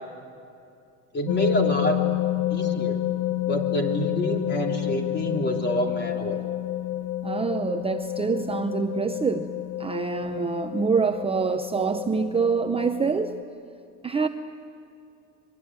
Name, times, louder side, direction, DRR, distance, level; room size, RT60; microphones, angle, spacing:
voice 1, 1.1-2.0 2.5-3.0 3.4-6.4, equal, 30° left, 2 dB, 3.7 m, -27 dB
sound 1, 1.3-13.4, left 15 dB, 90° left, 1.1 m, -29 dB
voice 2, 7.2-9.5 9.8-13.3 14.0-14.3, right 5 dB, 15° right, 6 dB, 0.7 m, -26 dB
25.0 x 23.0 x 9.5 m, 2.6 s
cardioid pair, 130°, 37 cm